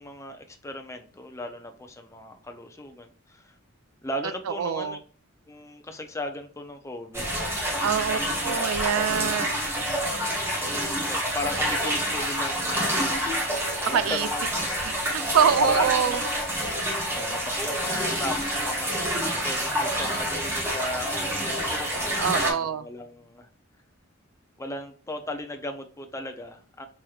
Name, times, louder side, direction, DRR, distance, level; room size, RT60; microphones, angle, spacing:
voice 1, 0.0-3.6 4.0-5.0 5.5-7.9 10.7-13.1 13.9-14.5 15.4-16.1 16.9-18.9 19.4-23.5 24.6-26.9, left 1 dB, 15° left, 5 dB, 0.5 m, -36 dB
voice 2, 4.5-5.0 7.8-9.6 13.9-14.3 14.8-16.2 22.2-22.8, right 7 dB, 80° right, 14 dB, 0.4 m, -25 dB
sound 1, 7.1-22.5, equal, 10° right, 0.9 m, -28 dB
4.7 x 3.0 x 2.3 m, 0.43 s
head